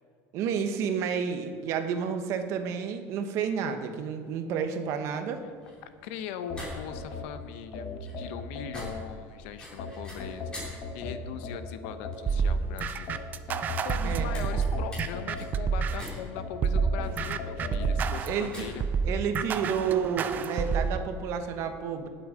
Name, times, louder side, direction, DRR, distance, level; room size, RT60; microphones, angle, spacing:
voice 1, 0.3-5.4 14.0-14.3 18.2-18.7 19.0-22.1, right 7 dB, 45° right, 7 dB, 1.1 m, -30 dB
sound 1, 5.3-20.5, left 1 dB, 15° left, 3.4 m, -47 dB
voice 2, 5.8-13.1 13.5-18.8, left 9 dB, 75° left, 10 dB, 0.9 m, -40 dB
sound 2, 6.5-9.3 9.8-12.6 13.1-15.9 16.4-18.0, left 4 dB, 40° left, 1.3 m, -38 dB
sound 3, 12.3-16.2 16.6-21.0, right 6 dB, 25° right, 0.5 m, -29 dB
18.0 x 7.9 x 5.0 m, 2.2 s
cardioid pair, 180°, 7 cm